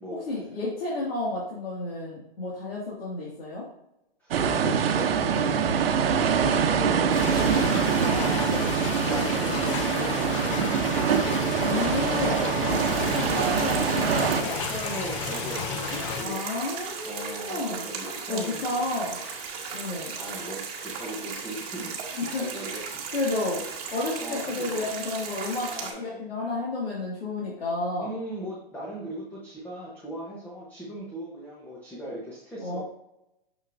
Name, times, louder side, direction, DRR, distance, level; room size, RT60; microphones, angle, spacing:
voice 1, 0.1-3.7 8.0-8.7 11.6-12.4 12.7-14.6 15.9-19.2 19.7-20.2 22.1-22.5 23.1-23.6 23.9-28.1 32.6-32.8, left 2 dB, 80° left, -6 dB, 2.1 m, -31 dB
voice 2, 4.2-5.8 6.2-11.4 12.5-13.2 14.7-16.5 17.0-18.8 20.1-22.0 22.2-23.0 24.2-24.9 25.7-26.5 28.0-32.8, right 1 dB, 5° left, -5 dB, 0.8 m, -38 dB
sound 1, 4.3-14.4, right 7 dB, 75° right, 0.8 m, -24 dB
sound 2, 7.1-16.2, left 6 dB, 35° left, 0.5 m, -33 dB
sound 3, 12.7-25.9, right 5 dB, 40° right, 1.4 m, -36 dB
6.3 x 6.3 x 2.6 m, 0.83 s
hypercardioid pair, 150°, 30 cm